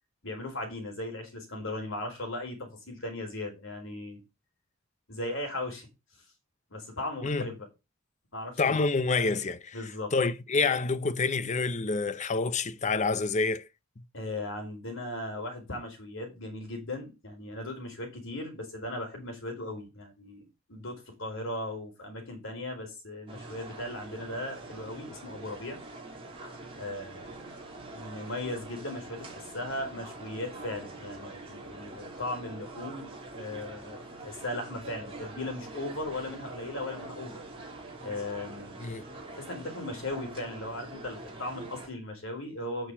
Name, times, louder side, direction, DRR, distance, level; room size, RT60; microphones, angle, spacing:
voice 1, 0.2-4.2 5.1-5.9 6.7-7.7 8.3-8.8 9.7-10.1 14.1-20.4 20.7-25.8 26.8-27.5 27.9-37.4 38.0-38.8 39.3-42.9, left 1 dB, 60° left, 4.5 m, -37 dB
voice 2, 8.6-9.8 10.1-13.7 14.0-14.1 38.8-39.1, left 4 dB, 35° left, 0.6 m, -27 dB
sound 1, 23.3-41.9, right 2 dB, 25° right, 3.2 m, -44 dB
8.5 x 6.5 x 4.9 m
head